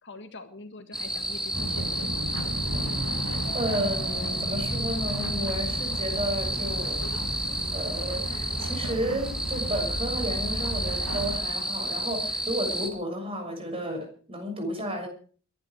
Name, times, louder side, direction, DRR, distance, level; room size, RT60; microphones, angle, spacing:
voice 1, 0.0-2.1, left 2 dB, 55° left, 8 dB, 1.8 m, -44 dB
sound 1, 0.9-12.9, equal, 5° right, 2.5 m, -31 dB
sound 2, 1.5-11.4, equal, 80° right, 5.8 m, -34 dB
voice 2, 3.5-7.0 7.7-15.1, equal, 25° right, 3 dB, 6.7 m, -32 dB
Mallet percussion, 3.5-5.9, right 12 dB, 60° right, 3.2 m, -47 dB
23.0 x 11.5 x 4.8 m, 0.42 s
head